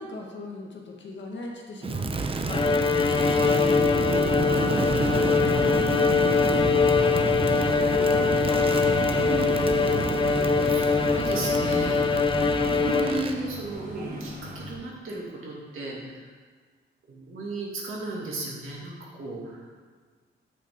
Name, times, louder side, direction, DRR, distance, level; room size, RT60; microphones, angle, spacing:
voice 1, 0.0-3.6 4.1-7.3 7.8-8.6, left 2 dB, 60° left, 0 dB, 1.7 m, -40 dB
Crackle, 1.8-13.4, right 3 dB, 25° right, 0.6 m, -29 dB
Bowed string instrument, 2.5-13.5, left 5 dB, 25° left, 0.4 m, -23 dB
sound 1, 3.1-14.7, right 1 dB, 45° right, 1.8 m, -37 dB
voice 2, 9.3-16.3 17.1-19.7, right 2 dB, 85° right, -4 dB, 2.5 m, -36 dB
9.0 x 8.7 x 3.8 m, 1.5 s
wide cardioid pair, 145°, 21 cm